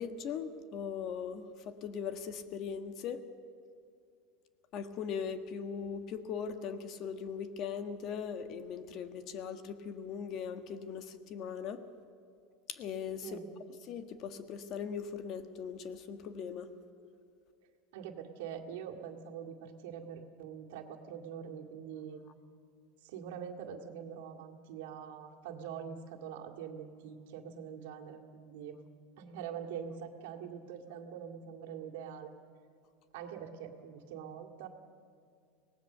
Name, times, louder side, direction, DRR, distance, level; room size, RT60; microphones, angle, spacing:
voice 1, 0.0-3.2 4.7-11.8 12.7-13.4 13.9-16.7, left 7 dB, 45° left, 9 dB, 1.5 m, -39 dB
voice 2, 17.9-22.2 23.0-28.8 29.2-32.3 33.1-34.7, right 8 dB, 75° right, 4 dB, 2.1 m, -44 dB
24.5 x 18.0 x 6.8 m, 2.4 s
supercardioid pair, 140°, 0 cm